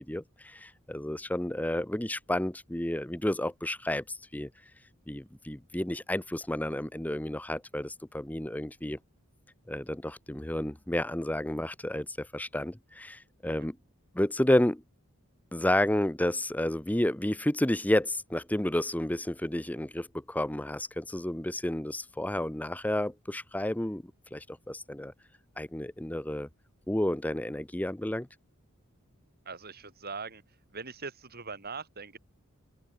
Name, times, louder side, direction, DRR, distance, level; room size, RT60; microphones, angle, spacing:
voice 1, 0.1-4.5 5.1-9.0 9.7-13.8 14.1-14.8 15.5-24.0 24.3-25.1 25.6-26.5 26.9-28.3, left 1 dB, 5° left, 0.7 m, -31 dB
voice 2, 29.5-30.4 30.7-32.2, right 4 dB, 45° right, 5.4 m, -41 dB
open air
head